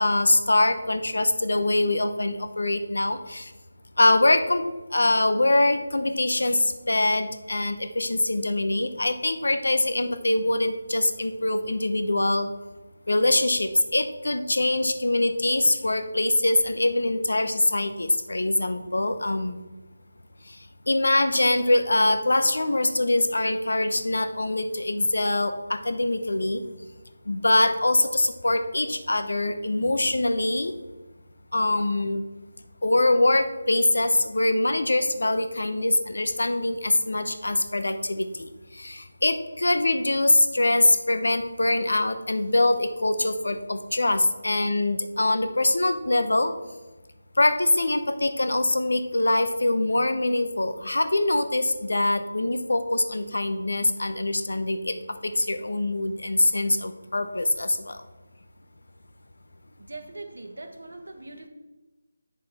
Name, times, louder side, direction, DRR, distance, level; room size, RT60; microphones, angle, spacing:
voice 1, 0.0-3.5 4.0-12.5 13.1-19.6 20.5-20.6 20.9-26.6 27.3-30.7 31.5-32.2 32.8-46.5 47.4-55.0 55.2-58.0, left 2 dB, 80° left, 9 dB, 0.9 m, -23 dB
voice 2, 59.8-61.5, right 2 dB, 85° right, 5 dB, 1.5 m, -41 dB
8.1 x 6.5 x 4.2 m, 1.2 s
figure-of-eight pair, 165°, 0 cm